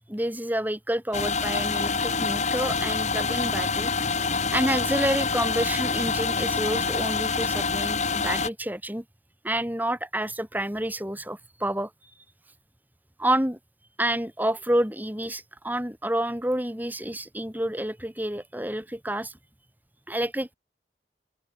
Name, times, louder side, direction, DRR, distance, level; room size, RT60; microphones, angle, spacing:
voice 1, 0.1-3.9 4.5-9.0 9.4-11.9 13.2-13.6 14.0-19.4 20.1-20.5, right 1 dB, 10° right, 4.3 m, -29 dB
sound 1, 1.1-8.5, left 4 dB, 40° left, 3.1 m, -26 dB
open air
head